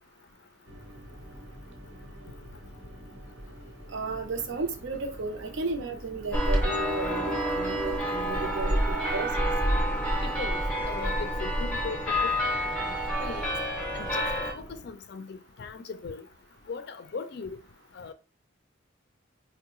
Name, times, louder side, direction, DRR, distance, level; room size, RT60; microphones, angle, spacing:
sound 1, 0.7-14.8, equal, 85° right, 1.1 m, -46 dB
voice 1, 3.9-9.5, right 3 dB, 70° right, 0.6 m, -34 dB
sound 2, 6.3-14.5, equal, 5° left, 0.6 m, -28 dB
voice 2, 10.2-12.0 13.2-13.5 13.9-14.3 14.5-16.3 16.7-17.6 18.0-18.1, left 4 dB, 55° left, 0.4 m, -39 dB
4.4 x 2.1 x 3.0 m
head